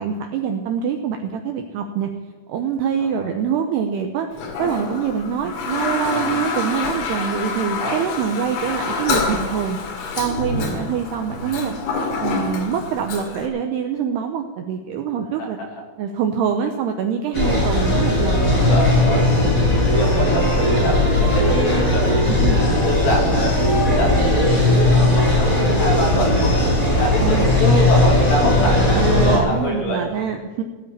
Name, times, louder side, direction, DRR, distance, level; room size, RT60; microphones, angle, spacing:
voice 1, 0.0-2.1 2.5-9.8 10.2-11.7 12.2-15.6 16.0-18.5 22.3-22.6 27.2-27.5 28.9-30.6, right 7 dB, 90° right, 5 dB, 2.3 m, -25 dB
voice 2, 3.0-3.3 7.8-8.1 15.4-15.7 18.0-18.2 18.5-23.5 23.9-26.6 27.0-30.0, equal, 50° left, 1 dB, 3.5 m, -26 dB
Toilet flush, 4.3-13.5, left 4 dB, 70° left, 4.4 m, -27 dB
sound 1, 17.3-29.4, left 1 dB, 15° left, 7.2 m, -17 dB
18.0 x 8.9 x 8.8 m, 1.4 s
omnidirectional pair, 6.0 m